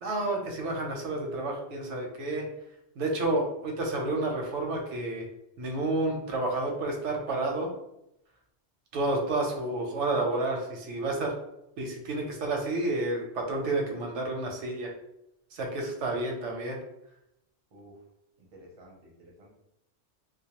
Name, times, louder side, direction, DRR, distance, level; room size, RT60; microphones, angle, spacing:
voice 1, 0.0-2.5 3.0-5.3 5.6-7.7 8.9-11.3 11.8-14.9 15.5-16.8, right 2 dB, 85° right, 1 dB, 0.9 m, -30 dB
voice 2, 17.7-18.0 18.4-19.5, equal, 40° right, -1 dB, 0.6 m, -53 dB
2.2 x 2.0 x 2.8 m, 0.83 s
omnidirectional pair, 1.2 m